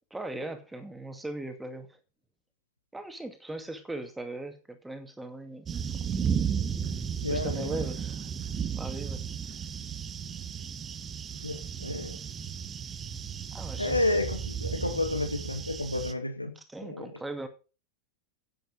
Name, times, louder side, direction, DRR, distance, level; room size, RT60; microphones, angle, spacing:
voice 1, 0.1-2.0 2.9-5.8 7.3-8.3 8.7-9.2 13.5-14.0 16.6-17.5, right 2 dB, 5° right, 2.4 m, -39 dB
sound 1, 5.7-16.1, right 7 dB, 20° right, 1.2 m, -34 dB
voice 2, 7.2-7.9 11.4-12.2 13.8-17.1, left 2 dB, 85° left, 2.0 m, -31 dB
10.5 x 9.4 x 5.2 m
figure-of-eight pair, 90°, 0 cm